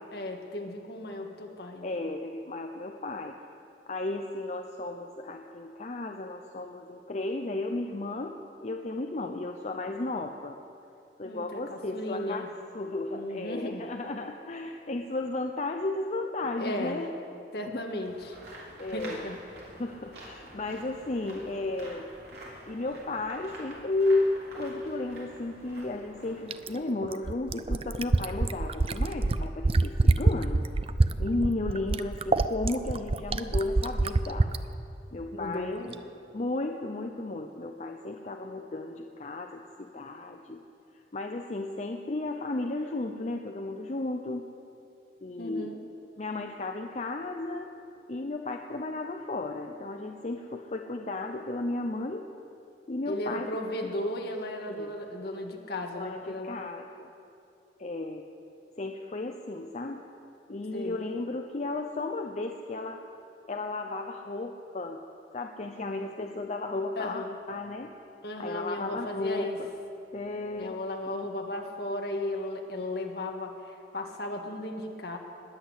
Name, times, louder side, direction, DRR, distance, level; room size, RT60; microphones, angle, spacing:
voice 1, 0.1-2.0 11.2-12.5 13.1-13.9 16.6-17.0 17.5-18.4 18.9-19.4 35.4-35.9 45.4-45.8 53.1-56.6 60.7-61.0 67.0-67.4 68.2-69.6 70.6-75.2, left 1 dB, 60° left, 2 dB, 1.7 m, -35 dB
voice 2, 1.8-3.4 3.9-10.6 11.2-12.5 12.7-17.1 17.7-17.8 18.8-19.3 19.7-22.1 22.7-30.7 31.2-34.5 35.1-35.7 36.3-40.6 41.1-44.5 45.2-45.7 46.2-47.7 48.1-52.3 52.9-53.5 54.7-54.9 55.9-57.1 57.8-58.3 58.8-60.0 60.5-63.0 63.5-65.0 65.3-68.0 68.4-69.5 70.1-70.8, left 2 dB, 40° left, 4 dB, 0.7 m, -34 dB
sound 1, 18.0-26.8, right 1 dB, 65° right, 4.2 m, -48 dB
Fill (with liquid), 26.5-34.6 35.9-36.0, right 2 dB, 35° right, 0.5 m, -25 dB
20.5 x 8.4 x 8.2 m, 2.8 s
head